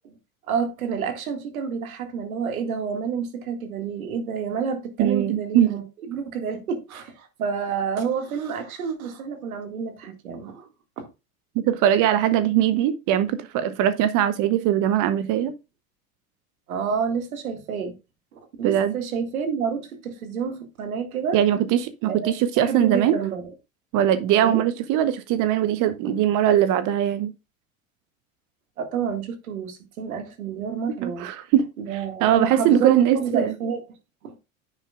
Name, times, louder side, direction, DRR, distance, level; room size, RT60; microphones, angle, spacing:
voice 1, 0.5-10.7 11.0-11.1 16.7-18.0 18.6-21.4 22.1-22.3 22.6-23.4 24.4-24.6 28.8-31.3 31.8-33.8 34.2-34.4, right 6 dB, 80° right, 2.1 m, -29 dB
voice 2, 5.0-5.7 11.5-15.5 18.6-18.9 21.3-23.1 23.9-27.3 31.0-31.7 32.2-33.5, right 11 dB, 50° right, 0.9 m, -21 dB
9.8 x 8.3 x 2.4 m
hypercardioid pair, 85°, 42 cm